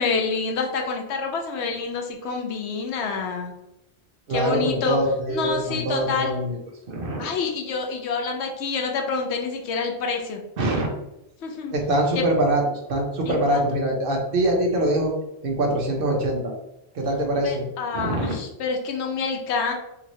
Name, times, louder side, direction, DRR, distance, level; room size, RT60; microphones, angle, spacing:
voice 1, 0.0-3.5 4.3-5.0 5.3-6.4 7.2-10.4 11.4-11.7 12.1-12.2 13.3-13.7 17.4-19.7, left 4 dB, 80° left, 3 dB, 0.9 m, -27 dB
voice 2, 4.3-6.6 6.9-7.3 10.6-10.9 11.7-12.6 12.9-15.1 15.4-16.5 16.9-17.6 17.9-18.3, right 1 dB, 60° right, 1 dB, 0.8 m, -23 dB
3.0 x 2.7 x 2.6 m, 0.85 s
omnidirectional pair, 1.1 m